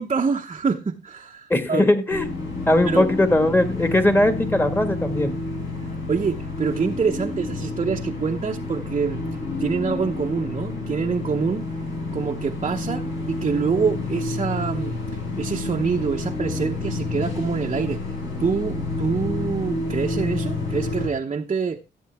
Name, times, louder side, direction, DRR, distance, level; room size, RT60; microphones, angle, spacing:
voice 1, 0.0-1.9 2.8-3.1 5.8-9.2 9.6-11.7 12.1-15.0 15.4-18.0 18.4-21.8, right 5 dB, 30° right, 0.9 m, -26 dB
voice 2, 1.5-2.3 2.7-5.3, left 1 dB, 10° left, 1.8 m, -19 dB
sound 1, 2.1-21.1, left 3 dB, 80° left, 5.2 m, -29 dB
14.5 x 7.9 x 3.5 m
cardioid pair, 90°, 20 cm